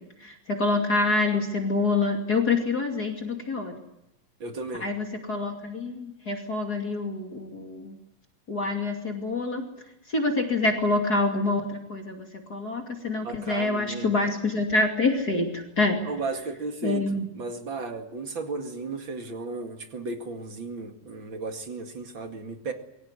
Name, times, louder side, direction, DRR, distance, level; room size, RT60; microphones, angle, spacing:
voice 1, 0.2-3.8 4.8-8.0 8.5-9.6 10.1-16.1 16.8-17.3, left 3 dB, 30° left, 3 dB, 2.6 m, -26 dB
voice 2, 4.4-4.9 13.2-14.1 16.0-22.7, right 3 dB, 40° right, 6 dB, 2.5 m, -35 dB
23.0 x 17.5 x 9.8 m, 0.90 s
omnidirectional pair, 4.0 m